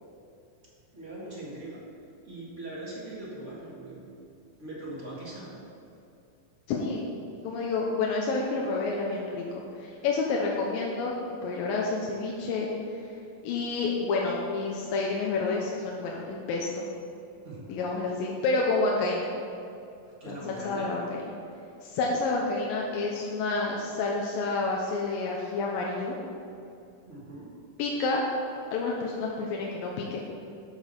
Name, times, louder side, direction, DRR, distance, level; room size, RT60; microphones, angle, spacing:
voice 1, 0.9-1.8 2.2-4.1 4.6-5.6 17.4-17.6 20.2-20.9 27.1-27.5, right 1 dB, 40° right, -6 dB, 1.0 m, -41 dB
voice 2, 6.7-7.1 7.4-9.4 9.8-11.1 11.4-12.7 13.4-16.9 17.7-19.3 20.3-21.2 21.8-26.2 27.8-28.4 28.7-30.2, left 3 dB, 75° left, -2 dB, 2.4 m, -29 dB
13.5 x 6.2 x 5.4 m, 2.6 s
omnidirectional pair, 4.6 m